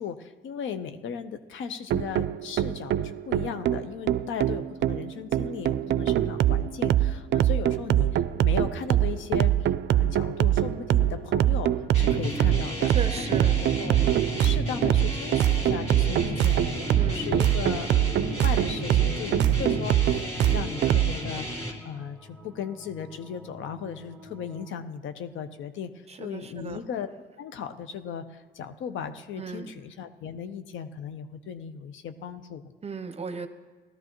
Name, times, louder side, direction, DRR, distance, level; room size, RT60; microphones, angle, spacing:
voice 1, 0.0-12.9 13.2-13.3 13.6-14.0 14.3-27.1 27.4-32.7, left 7 dB, 75° left, 10 dB, 0.7 m, -37 dB
sound 1, 1.9-21.1, right 12 dB, 65° right, 0.4 m, -24 dB
sound 2, 9.8-24.8, left 1 dB, 5° left, 1.0 m, -49 dB
sound 3, 11.9-21.7, equal, 30° left, 2.1 m, -33 dB
voice 2, 12.9-13.6 17.0-17.3 26.1-26.8 29.4-29.7 32.8-33.5, right 4 dB, 30° right, 10 dB, 0.8 m, -36 dB
17.5 x 13.0 x 3.0 m, 1.3 s
cardioid pair, 90°, 20 cm